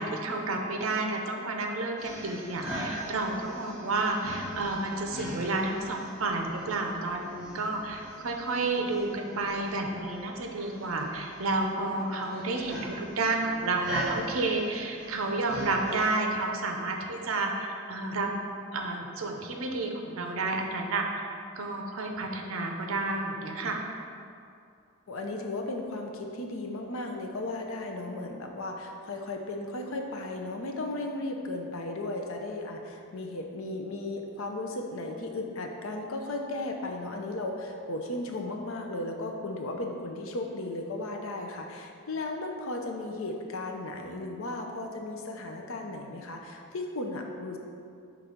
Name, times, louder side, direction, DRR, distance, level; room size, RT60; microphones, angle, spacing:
voice 1, 0.0-18.3 18.7-23.9, right 3 dB, 75° right, 2 dB, 0.6 m, -31 dB
sound 1, 2.0-16.1, equal, 5° right, 1.1 m, -42 dB
voice 2, 25.1-47.6, left 2 dB, 70° left, 2 dB, 0.6 m, -35 dB
5.9 x 3.2 x 5.1 m, 2.4 s
head